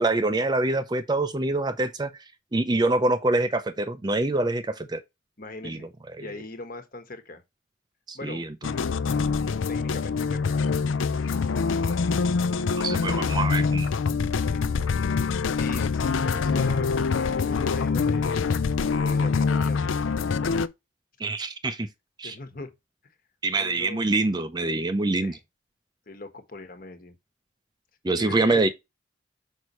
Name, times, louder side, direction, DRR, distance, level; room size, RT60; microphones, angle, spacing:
voice 1, 0.0-2.1 2.5-5.0 5.6-5.8 6.2-6.3 8.1-8.5 12.8-13.9 21.2-21.9 22.2-22.4 23.4-25.3 28.0-28.7, right 2 dB, 20° right, 0.5 m, -25 dB
voice 2, 5.4-5.9 6.2-7.4 8.1-8.5 9.7-10.7 14.2-14.6 15.0-15.3 15.5-18.5 19.0-19.9 22.2-22.7 23.0-23.1 23.6-24.1 25.2-25.4 26.1-27.1 28.1-28.7, left 2 dB, 45° left, 1.4 m, -40 dB
sound 1, 8.6-20.7, left 5 dB, 75° left, 0.5 m, -25 dB
6.2 x 5.4 x 3.0 m
head